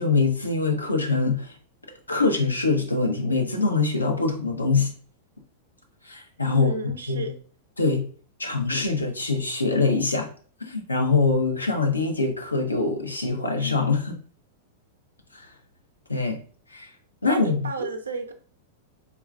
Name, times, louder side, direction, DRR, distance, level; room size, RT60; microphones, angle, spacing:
voice 1, 0.0-1.6 2.1-4.9 6.1-6.7 7.1-7.3 7.8-8.0 8.4-10.3 10.6-14.2 15.3-15.5 16.1-16.4 16.7-16.9 17.2-17.5, left 3 dB, 85° left, 1 dB, 0.6 m, -24 dB
voice 2, 6.5-7.3 17.2-18.3, right 4 dB, 75° right, 6 dB, 0.5 m, -32 dB
3.7 x 2.3 x 2.3 m, 0.42 s
figure-of-eight pair, 95°, 0 cm